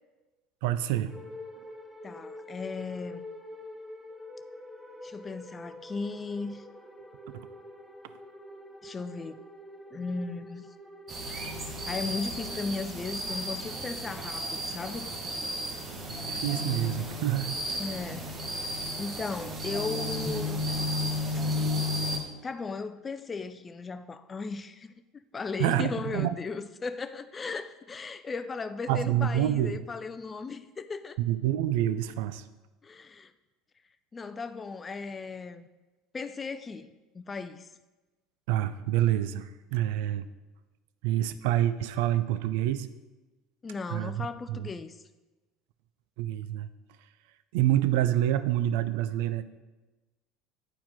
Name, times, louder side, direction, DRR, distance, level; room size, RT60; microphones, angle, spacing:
voice 1, 0.6-1.1 7.3-7.5 16.2-17.6 25.6-26.3 28.9-29.8 31.2-32.4 38.5-40.3 41.0-42.9 43.9-44.7 46.2-46.7 47.5-49.4, right 12 dB, 70° right, 0.4 m, -27 dB
sound 1, 1.1-16.7, left 1 dB, ahead, 0.8 m, -47 dB
voice 2, 2.0-3.2 5.0-6.6 8.8-9.4 9.9-10.7 11.3-11.4 11.9-15.1 17.8-18.3 19.0-20.6 22.4-24.9 25.3-31.2 32.8-33.3 34.1-35.7 36.1-37.7 43.6-45.0, left 4 dB, 25° left, 0.4 m, -36 dB
sound 2, 11.1-22.2, left 1 dB, 35° right, 1.3 m, -33 dB
8.9 x 4.7 x 3.7 m
hypercardioid pair, 75°, 0 cm